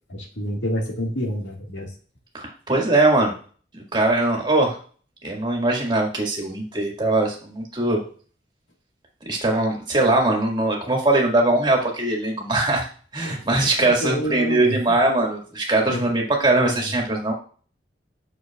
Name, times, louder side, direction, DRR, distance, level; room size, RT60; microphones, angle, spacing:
voice 1, 0.1-1.9 13.2-13.3 13.8-15.0 15.9-16.0 16.5-16.8, equal, 90° left, 1 dB, 1.8 m, -28 dB
voice 2, 2.3-3.3 3.9-4.8 5.2-8.0 9.3-12.9 13.1-17.3, right 2 dB, 25° right, 0 dB, 1.8 m, -21 dB
7.9 x 6.3 x 2.3 m, 0.42 s
head